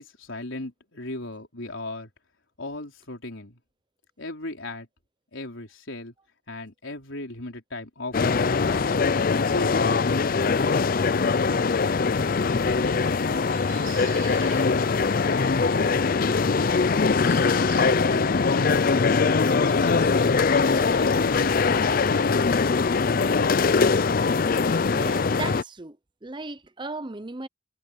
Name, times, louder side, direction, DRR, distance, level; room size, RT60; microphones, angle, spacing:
voice 1, 0.0-2.1 2.6-3.6 4.2-4.9 5.3-6.1 6.5-8.3 8.6-9.1 9.5-10.4 11.1-11.9 12.4-13.3 13.7-14.9 15.2-16.5 17.4-17.5 17.9-18.9 20.8-21.8 22.3-22.7 23.1-23.9, left 2 dB, 75° left, 4.0 m, -36 dB
sound 1, 8.1-25.6, left 4 dB, 45° left, 0.4 m, -22 dB
sound 2, 11.0-18.2, right 12 dB, 90° right, 7.7 m, -50 dB
sound 3, 17.0-17.9 18.6-22.0, right 10 dB, 60° right, 5.6 m, -50 dB
voice 2, 24.9-26.0 26.2-27.5, right 3 dB, 25° right, 0.8 m, -36 dB
head